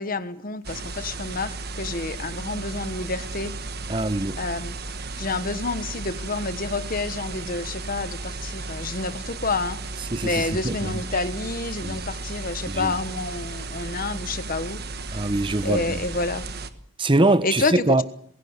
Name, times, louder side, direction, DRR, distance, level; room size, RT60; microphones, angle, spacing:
voice 1, 0.0-3.5 4.4-4.8 5.2-9.8 10.2-14.8 15.6-16.4 17.4-17.8, left 3 dB, 45° left, 1.3 m, -29 dB
sound 1, 0.6-16.7, right 3 dB, 50° right, 1.4 m, -34 dB
voice 2, 3.9-4.4 10.1-11.0 11.8-12.0 12.7-12.9 15.1-16.0 17.0-18.0, right 2 dB, 25° right, 0.8 m, -23 dB
21.5 x 16.5 x 8.1 m
head